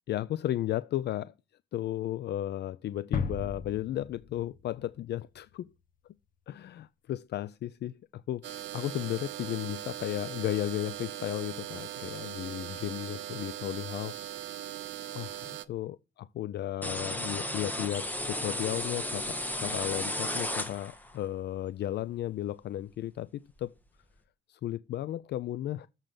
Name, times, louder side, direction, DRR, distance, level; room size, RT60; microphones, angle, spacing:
voice 1, 0.1-1.3 1.7-5.7 6.5-8.5 8.7-14.1 15.1-23.3 23.6-23.7 24.5-25.9, left 13 dB, 60° left, 0.4 m, -34 dB
sound 1, 3.1-5.0, left 5 dB, 45° left, 1.3 m, -35 dB
sound 2, 8.4-15.6, right 12 dB, 70° right, 0.7 m, -40 dB
sound 3, 16.8-21.2, left 1 dB, 10° left, 1.4 m, -34 dB
7.4 x 6.7 x 3.8 m
cardioid pair, 90°, 20 cm